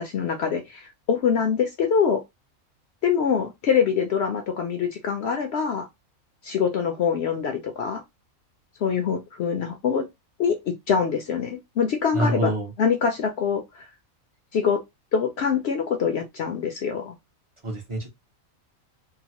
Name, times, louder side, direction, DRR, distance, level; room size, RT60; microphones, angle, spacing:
voice 1, 0.0-2.2 3.0-5.9 6.4-8.0 8.8-10.0 10.4-12.5 12.8-13.8 14.5-14.8 15.1-17.1, left 6 dB, 65° left, 0.7 m, -24 dB
voice 2, 12.1-12.7 17.6-18.1, right 1 dB, 35° right, 0.5 m, -26 dB
2.8 x 2.1 x 2.9 m
omnidirectional pair, 1.5 m